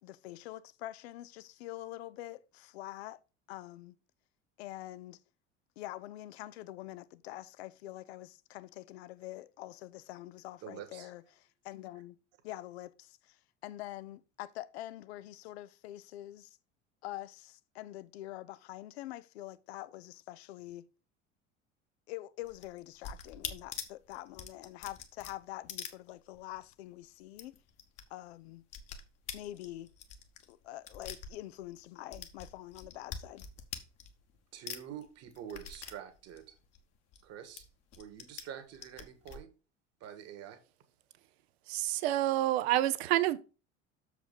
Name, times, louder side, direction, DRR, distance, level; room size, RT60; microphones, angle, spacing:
voice 1, 0.0-3.2 3.5-4.0 4.6-5.2 5.8-12.2 12.4-16.6 17.0-20.9 22.1-27.6 28.1-28.6 29.3-29.9 30.5-33.5, left 15 dB, 60° left, 0.6 m, -45 dB
voice 2, 10.6-11.1 34.5-36.6 37.2-37.6 38.0-39.5 40.0-40.6, right 9 dB, 45° right, 1.6 m, -46 dB
sound 1, 22.4-26.6 26.9-27.0 27.3-28.0 28.3-31.8 32.1-34.4 34.7-37.2 37.6-38.4 38.7-39.4, left 7 dB, 40° left, 1.4 m, -45 dB
voice 3, 41.7-43.4, right 14 dB, 60° right, 0.7 m, -28 dB
6.9 x 4.9 x 5.1 m
figure-of-eight pair, 65°, 37 cm